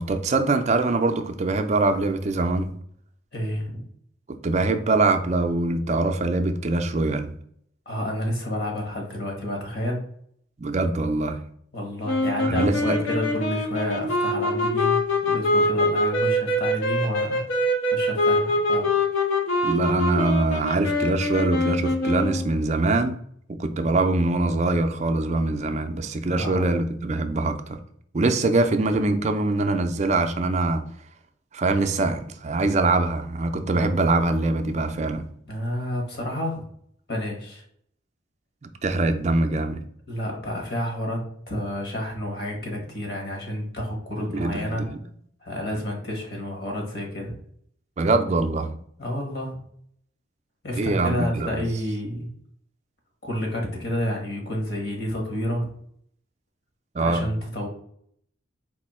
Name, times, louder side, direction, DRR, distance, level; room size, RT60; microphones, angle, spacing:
voice 1, 0.0-2.7 4.3-7.3 10.6-11.4 12.4-13.0 19.6-23.2 23.5-27.8 28.1-30.8 31.5-35.2 38.6-39.8 44.3-45.0 48.0-48.8 50.8-51.7 56.9-57.3, right 2 dB, 35° right, 7 dB, 0.4 m, -23 dB
voice 2, 3.3-3.8 7.8-10.0 11.7-15.0 15.2-17.4 17.9-18.9 26.3-26.7 35.5-36.6 37.1-37.6 40.1-44.9 45.4-47.3 49.0-49.6 50.6-52.3 53.2-55.7 57.0-57.7, left 1 dB, 50° left, 1 dB, 1.3 m, -30 dB
sound 1, 12.1-22.5, left 1 dB, 75° left, 0.9 m, -24 dB
4.2 x 2.7 x 4.2 m, 0.66 s
head